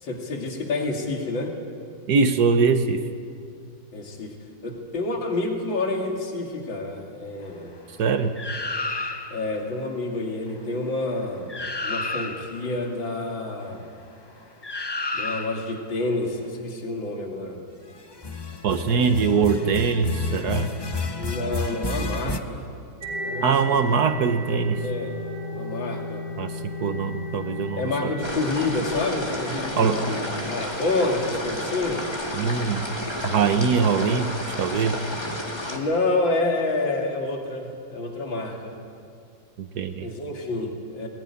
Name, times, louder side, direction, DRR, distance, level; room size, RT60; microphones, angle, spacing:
voice 1, 0.0-1.5 3.9-4.3 4.6-7.8 9.3-11.5 11.8-13.8 15.1-17.6 18.8-19.3 21.2-22.7 23.2-23.6 24.8-25.1 25.5-26.2 27.7-32.0 35.7-38.7 40.0-41.1, left 2 dB, 80° left, 1 dB, 3.2 m, -28 dB
voice 2, 2.1-3.0 8.0-8.3 18.6-20.7 23.4-24.8 26.4-26.5 26.8-28.3 29.8-30.0 32.3-32.9 33.2-35.0 39.6-40.1, right 5 dB, 60° right, 9 dB, 1.6 m, -22 dB
sound 1, 8.4-9.5 11.2-11.3 11.5-12.7 14.6-15.8 18.1-22.4, left 3 dB, 35° left, 0.3 m, -30 dB
sound 2, 23.0-32.5, left 1 dB, 80° right, 5.3 m, -36 dB
sound 3, 28.2-35.8, left 1 dB, 15° left, 2.1 m, -31 dB
20.0 x 20.0 x 10.0 m, 2.3 s
omnidirectional pair, 2.1 m